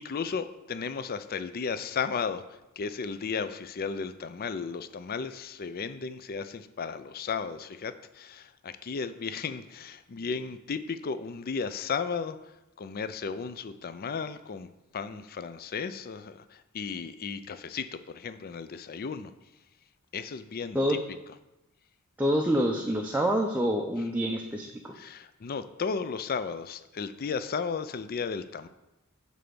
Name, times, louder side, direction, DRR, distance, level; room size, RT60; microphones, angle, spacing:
voice 1, 0.0-19.3 20.1-21.0 24.9-28.7, left 5 dB, 45° left, 12 dB, 0.4 m, -34 dB
voice 2, 22.2-24.9, equal, 10° right, 1 dB, 0.5 m, -27 dB
9.0 x 3.4 x 6.7 m, 0.95 s
head